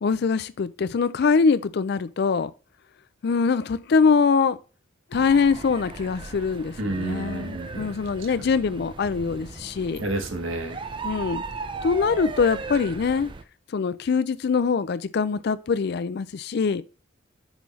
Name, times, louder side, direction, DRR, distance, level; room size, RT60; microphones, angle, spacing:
voice 1, 0.0-2.5 3.2-4.6 5.1-10.0 11.0-11.4 11.8-13.3 13.7-16.8, left 5 dB, 50° left, 0.4 m, -23 dB
sound 1, 5.1-13.4, right 4 dB, 25° right, 0.4 m, -37 dB
voice 2, 6.8-7.9 10.0-10.8, right 2 dB, 70° right, 1.3 m, -30 dB
6.1 x 5.4 x 3.1 m
head